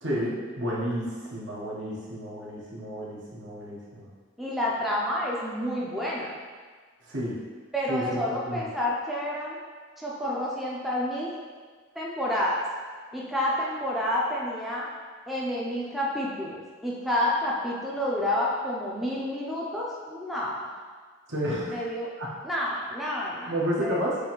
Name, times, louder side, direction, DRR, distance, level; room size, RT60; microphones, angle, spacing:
voice 1, 0.0-4.1 7.1-7.5 7.9-8.2 8.5-8.6 21.3-21.8 22.2-22.3 23.5-24.2, equal, 65° right, -5 dB, 1.0 m, -31 dB
voice 2, 4.4-6.3 7.7-9.6 10.0-11.3 11.9-12.6 13.1-14.9 15.3-20.7 21.7-22.1 22.4-24.1, left 1 dB, ahead, -6 dB, 0.4 m, -29 dB
6.4 x 2.7 x 3.0 m, 1.5 s
head